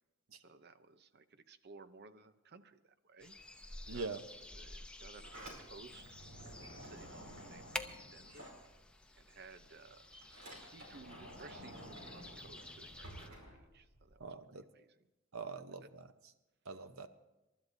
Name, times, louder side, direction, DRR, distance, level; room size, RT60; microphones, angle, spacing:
voice 1, 0.4-3.4 3.9-4.2 4.5-6.0 6.4-8.5 9.1-10.2 10.7-14.2 14.5-15.1 15.8-15.9, right 4 dB, 50° right, 11 dB, 0.7 m, -58 dB
sound 1, 3.2-13.3, left 2 dB, 5° left, 0.7 m, -51 dB
voice 2, 3.9-4.2 14.2-14.6 15.3-16.0 16.7-17.1, right 4 dB, 85° right, 9 dB, 0.9 m, -43 dB
Sliding door, 5.0-9.2 9.5-14.2, right 1 dB, 70° right, 4.9 m, -53 dB
28.0 x 12.5 x 2.7 m, 1.0 s
head